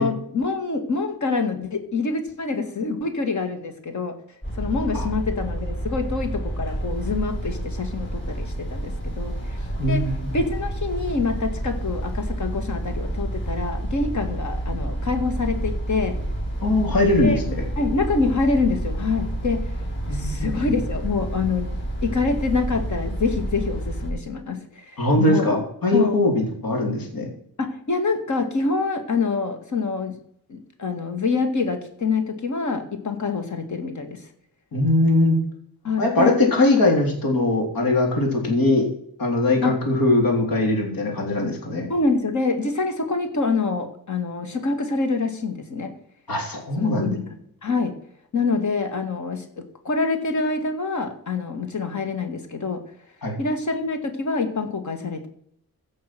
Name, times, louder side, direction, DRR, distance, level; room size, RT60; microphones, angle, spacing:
voice 1, 0.0-4.1 4.6-9.6 9.9-10.0 10.3-16.2 17.2-17.4 17.8-19.6 20.1-21.7 22.0-25.5 25.9-26.2 27.6-30.2 30.5-34.2 35.8-36.3 39.6-39.8 41.9-45.9 46.8-47.9 48.3-52.8 53.4-55.3, left 4 dB, 55° left, 6 dB, 2.2 m, -26 dB
sound 1, 4.4-24.1, right 1 dB, 30° left, 5.4 m, -29 dB
voice 2, 9.8-10.3 16.6-17.6 20.1-20.5 25.0-27.3 34.7-35.4 36.0-38.9 39.2-41.9 46.3-47.2 53.2-53.4, left 2 dB, 80° left, 2 dB, 3.8 m, -21 dB
15.5 x 6.4 x 6.0 m, 0.67 s
wide cardioid pair, 180°, 35 cm